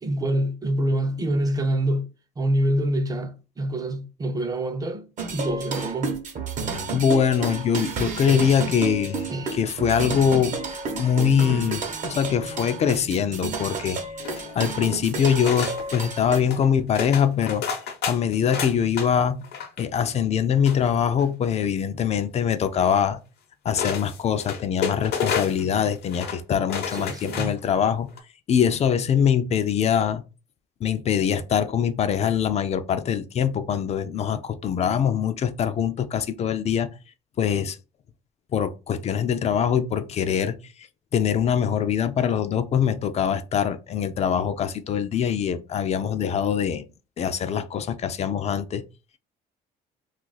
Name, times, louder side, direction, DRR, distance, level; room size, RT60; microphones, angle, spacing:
voice 1, 0.0-2.1 2.4-6.2 9.3-9.6 26.9-27.6, right 1 dB, 20° right, 0.5 m, -26 dB
sound 1, 5.2-16.4, right 4 dB, 50° right, 0.8 m, -31 dB
voice 2, 6.9-10.6 10.9-14.0 14.6-17.6 18.1-19.5 19.8-23.2 23.6-28.1 28.5-30.2 30.8-36.9 37.4-37.8 38.5-40.6 41.1-46.8 47.2-48.8, left 8 dB, 40° left, 0.4 m, -23 dB
sound 2, 14.2-14.9 15.5-16.0 16.4-16.7 17.0-19.1 19.4-19.8 20.7-21.4 22.8-22.9 23.7-25.7 26.0-26.4 26.7-27.7 28.1-28.2, left 6 dB, 70° left, 0.7 m, -31 dB
2.4 x 2.3 x 3.9 m
cardioid pair, 110°, 17 cm